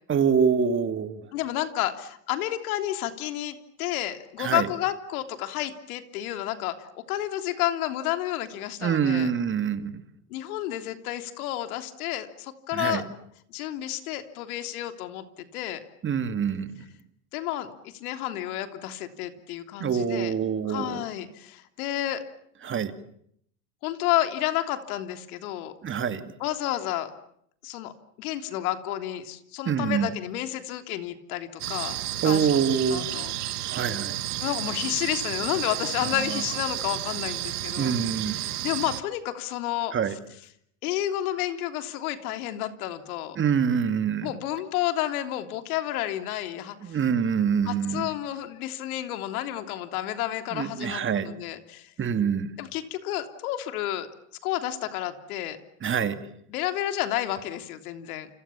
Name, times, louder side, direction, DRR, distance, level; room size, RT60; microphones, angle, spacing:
voice 1, 0.1-1.2 4.4-4.7 8.8-9.9 12.7-13.0 16.0-16.8 19.8-21.0 22.6-22.9 25.8-26.3 29.7-30.1 32.2-33.1 33.7-34.2 37.8-38.4 39.9-40.1 43.4-44.3 46.8-48.1 50.5-51.3 52.0-52.5 55.8-56.2, right 7 dB, 25° right, 10 dB, 2.3 m, -25 dB
voice 2, 1.3-9.3 10.3-13.0 13.5-15.8 17.3-20.3 20.7-22.2 23.8-25.7 26.4-27.1 27.6-27.9 28.2-32.0 32.2-32.6 32.9-33.8 34.4-37.9 38.3-40.2 40.8-43.4 44.2-47.0 47.6-51.9 52.6-54.1 54.4-55.6 56.5-58.3, left 13 dB, 70° left, 8 dB, 3.4 m, -31 dB
sound 1, 31.6-39.0, right 15 dB, 85° right, 1.6 m, -32 dB
29.5 x 27.0 x 7.3 m, 0.70 s
supercardioid pair, 115°, 44 cm